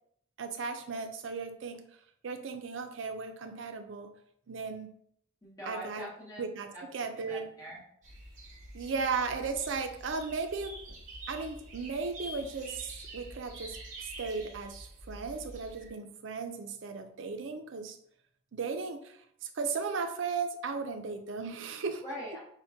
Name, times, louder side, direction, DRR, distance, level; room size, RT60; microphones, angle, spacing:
voice 1, 0.4-1.8 2.2-4.1 4.5-4.9 5.7-6.0 6.4-6.7 6.9-7.4 8.7-10.7 11.3-13.8 14.2-18.0 18.5-22.0, right 4 dB, 65° right, 7 dB, 0.4 m, -36 dB
voice 2, 5.4-6.4 6.7-6.8 7.2-7.8 22.0-22.4, equal, 15° left, -5 dB, 1.0 m, -42 dB
sound 1, 8.0-15.9, right 1 dB, 35° right, 0.8 m, -47 dB
5.7 x 2.1 x 2.7 m, 0.67 s
head